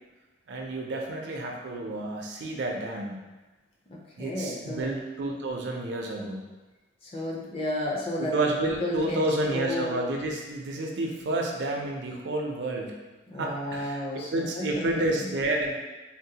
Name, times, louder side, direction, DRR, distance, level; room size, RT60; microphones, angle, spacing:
voice 1, 0.5-3.2 4.2-6.4 8.2-13.0 13.4-15.8, right 2 dB, 70° right, 1 dB, 0.4 m, -30 dB
voice 2, 3.9-4.9 7.0-8.3 8.8-9.2 9.5-9.9 13.3-15.3, left 1 dB, 30° left, -3 dB, 0.5 m, -32 dB
3.7 x 2.0 x 2.7 m, 1.2 s
head